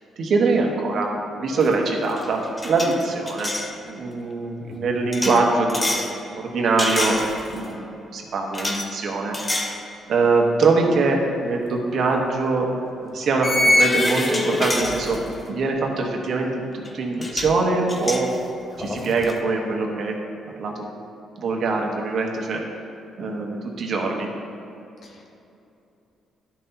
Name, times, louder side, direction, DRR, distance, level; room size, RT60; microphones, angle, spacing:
voice 1, 0.2-1.1 1.4-3.5 3.8-7.2 7.5-9.4 10.1-12.7 13.0-15.2 15.5-18.3 18.8-20.2 20.6-20.8 21.4-22.6 23.2-24.3, right 3 dB, 60° right, 1 dB, 1.2 m, -23 dB
sound 1, 1.6-1.8 2.1-3.7 5.1-6.1 6.8-7.7 8.5-8.9 9.3-9.8 10.2-10.4 11.9-12.1 13.4-15.5 16.8-16.9 17.2-17.6 17.9-19.4, left 1 dB, 25° left, 0.8 m, -25 dB
voice 2, 4.6-5.0 25.0-25.4, left 4 dB, 55° left, 0 dB, 1.1 m, -43 dB
11.5 x 5.8 x 2.8 m, 2.8 s
cardioid pair, 90°, 0 cm